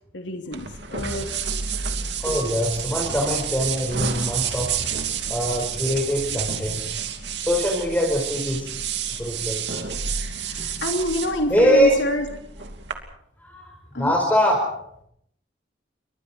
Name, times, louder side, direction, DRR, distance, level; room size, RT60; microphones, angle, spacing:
voice 1, 0.1-0.6 0.9-1.4 10.4-12.2 13.9-14.1, equal, 90° left, 3 dB, 2.9 m, -27 dB
sound 1, 0.5-12.9, right 7 dB, 70° right, 2.8 m, -30 dB
voice 2, 2.2-4.7 5.3-6.9 7.3-8.7 9.2-9.6 11.5-12.0 13.4-13.7 14.0-14.7, equal, 10° left, -1 dB, 4.9 m, -22 dB
29.5 x 24.0 x 4.5 m, 0.72 s
head